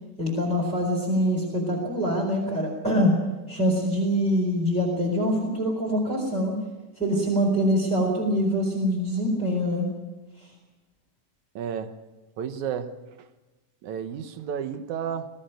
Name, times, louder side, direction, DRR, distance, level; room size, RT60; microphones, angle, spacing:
voice 1, 0.2-3.2 3.5-6.6 7.0-9.9, equal, ahead, 0 dB, 3.5 m, -24 dB
voice 2, 11.6-11.9 12.4-12.9 13.8-15.3, right 8 dB, 65° right, 9 dB, 2.3 m, -31 dB
22.0 x 15.0 x 9.2 m, 1.1 s
omnidirectional pair, 4.0 m